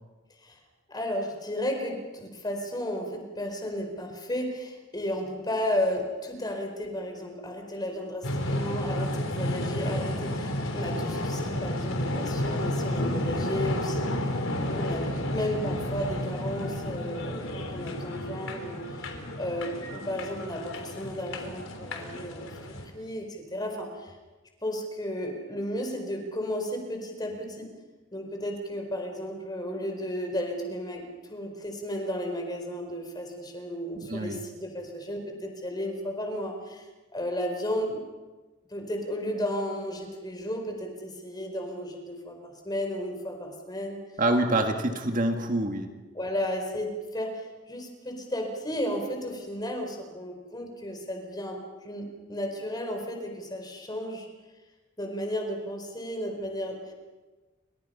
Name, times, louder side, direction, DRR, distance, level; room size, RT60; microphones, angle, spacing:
voice 1, 0.9-14.4 14.7-19.1 19.4-22.5 22.8-24.1 24.6-27.7 28.1-38.0 38.7-44.0 44.7-44.8 46.1-54.3 55.0-56.9, equal, 20° left, 3 dB, 4.3 m, -33 dB
sound 1, 8.2-22.9, left 1 dB, 85° left, 3.9 m, -31 dB
voice 2, 34.0-34.4 44.2-45.9, right 1 dB, 40° right, 4 dB, 1.8 m, -26 dB
29.5 x 25.0 x 5.6 m, 1.3 s
head